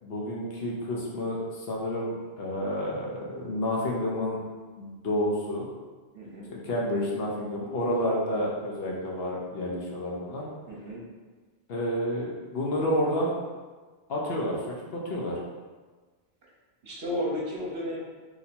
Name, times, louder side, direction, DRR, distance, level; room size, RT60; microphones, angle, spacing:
voice 1, 0.0-4.4 4.8-5.7 6.5-10.5 11.7-13.3 14.1-14.6 14.9-15.4, left 1 dB, 60° left, -3 dB, 0.9 m, -30 dB
voice 2, 6.1-6.5 10.7-11.0 16.8-18.0, equal, 60° right, -3 dB, 0.9 m, -33 dB
2.9 x 2.6 x 4.2 m, 1.3 s
omnidirectional pair, 1.2 m